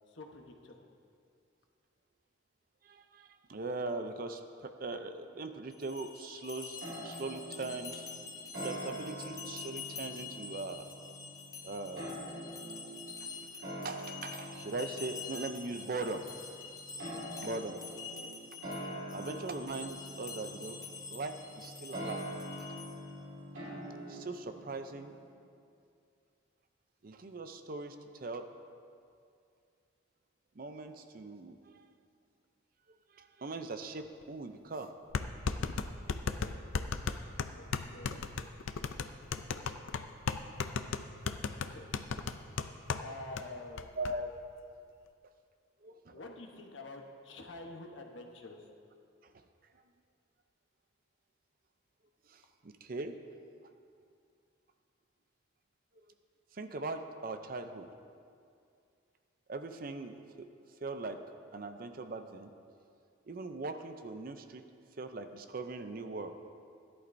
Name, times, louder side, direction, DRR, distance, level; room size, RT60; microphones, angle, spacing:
voice 1, 0.1-0.9 17.1-17.7 18.1-18.4 19.1-19.5 37.5-38.2 41.6-41.9 43.0-43.9 46.1-48.6, left 2 dB, 70° left, 2 dB, 1.1 m, -48 dB
voice 2, 2.8-6.8 7.0-8.0 8.6-10.9 11.6-12.1 13.2-13.3 13.8-16.2 17.4-17.8 19.1-20.8 21.1-22.3 22.7-22.8 24.1-25.2 27.0-28.5 30.6-31.8 33.1-34.9 43.9-44.3 45.8-46.2 52.3-53.2 56.5-57.9 59.5-60.5 60.8-61.2 61.5-62.5 63.3-64.6 65.0-66.4, right 3 dB, 45° right, 8 dB, 0.5 m, -40 dB
sound 1, 5.7-23.2, left 5 dB, 15° left, 0.8 m, -47 dB
sound 2, 6.8-25.3, equal, 70° right, 2.5 m, -45 dB
sound 3, 34.2-34.3 35.1-43.1 43.4-43.5 43.8-44.1, left 5 dB, 85° left, 0.5 m, -35 dB
16.0 x 11.0 x 2.6 m, 2.4 s
head